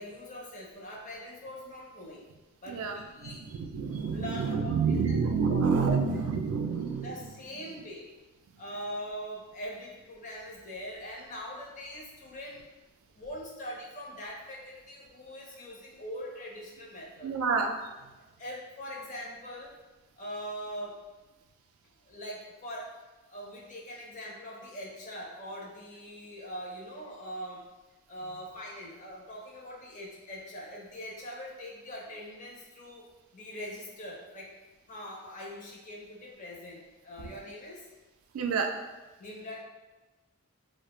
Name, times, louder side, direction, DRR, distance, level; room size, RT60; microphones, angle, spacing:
voice 1, 0.0-2.2 2.6-3.4 4.1-5.2 5.5-5.9 7.0-8.1 8.6-12.6 13.1-17.3 18.4-19.7 20.2-20.9 22.0-22.9 23.3-27.6 28.1-33.0 33.3-34.5 34.9-37.9 39.2-39.6, equal, 35° left, -3 dB, 0.5 m, -42 dB
voice 2, 2.7-7.1 17.2-17.7 38.3-38.7, right 5 dB, 80° right, 5 dB, 0.3 m, -28 dB
2.3 x 2.1 x 2.9 m, 1.1 s
head